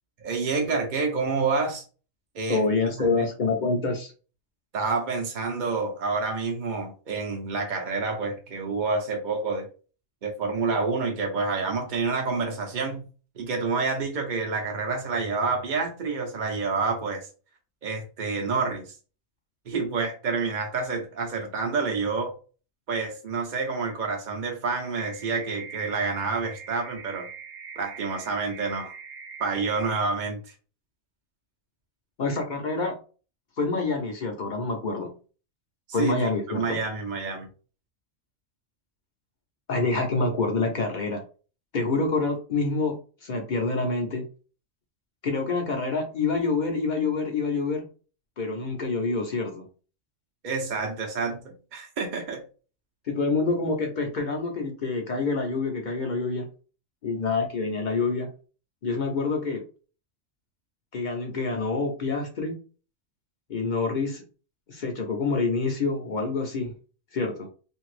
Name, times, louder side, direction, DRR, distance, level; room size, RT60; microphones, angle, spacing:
voice 1, 0.2-1.8 2.3-2.6 3.2-3.3 4.7-9.7 10.2-13.0 13.4-17.3 17.8-18.9 19.7-22.3 22.9-27.3 27.8-28.9 29.4-30.4 36.0-36.1 36.5-37.5 50.4-52.4, right 4 dB, 50° right, 1 dB, 0.6 m, -28 dB
voice 2, 2.5-4.1 32.2-32.9 33.6-35.1 35.9-36.8 39.7-41.2 41.7-42.9 43.2-44.2 45.2-47.9 48.4-49.6 53.1-56.5 57.0-58.3 58.8-59.6 60.9-62.6 63.5-64.2 64.7-66.7 67.1-67.5, left 3 dB, 50° left, 3 dB, 0.6 m, -27 dB
sound 1, 25.0-30.0, right 5 dB, 85° right, 1.0 m, -42 dB
2.8 x 2.6 x 3.2 m, 0.37 s
omnidirectional pair, 1.3 m